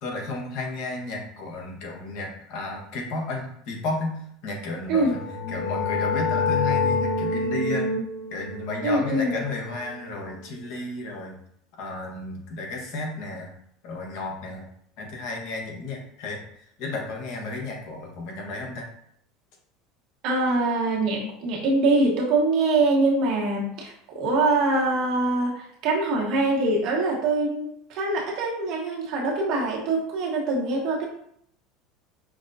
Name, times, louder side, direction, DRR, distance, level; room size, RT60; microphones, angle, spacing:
voice 1, 0.0-5.2 5.5-7.9 8.3-11.3 11.8-13.5 13.8-14.6 15.0-16.4 16.8-18.9, left 3 dB, 65° left, 0 dB, 1.1 m, -33 dB
sound 1, 4.9-10.5, left 3 dB, 35° left, 1.0 m, -28 dB
voice 2, 8.8-9.4 20.2-31.1, right 2 dB, 60° right, -2 dB, 1.2 m, -24 dB
5.8 x 2.1 x 2.7 m, 0.69 s
hypercardioid pair, 90°, 0 cm